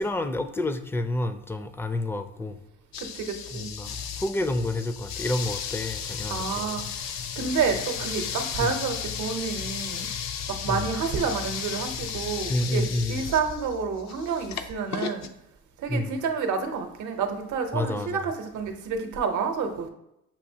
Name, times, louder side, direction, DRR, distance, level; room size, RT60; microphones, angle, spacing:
voice 1, 0.0-2.6 3.5-6.9 8.6-8.8 10.7-10.9 12.5-13.3 15.9-16.2 17.7-18.3, left 1 dB, 10° left, 9 dB, 0.3 m, -29 dB
sound 1, 2.9-15.3, left 7 dB, 65° left, 0.5 m, -34 dB
voice 2, 3.0-3.7 6.3-6.9 7.4-10.1 10.5-15.3 15.8-19.9, right 5 dB, 80° right, 6 dB, 0.7 m, -29 dB
6.9 x 2.7 x 2.7 m, 0.83 s
cardioid pair, 90°, 30 cm